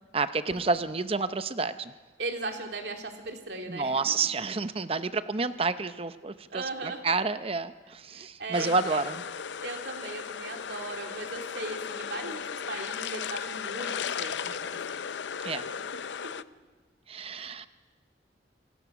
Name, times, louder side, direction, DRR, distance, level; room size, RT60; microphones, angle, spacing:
voice 1, 0.1-1.9 3.7-9.2 15.4-15.7 17.1-17.7, right 4 dB, 35° right, 12 dB, 0.7 m, -29 dB
voice 2, 2.2-4.3 6.5-7.0 8.1-9.0 9.6-15.0 15.3-15.7 16.2-16.4 17.3-17.5, right 2 dB, 70° right, 3 dB, 2.5 m, -38 dB
sound 1, 8.5-16.4, left 7 dB, 80° left, 0.5 m, -36 dB
27.5 x 16.5 x 6.1 m, 1.4 s
head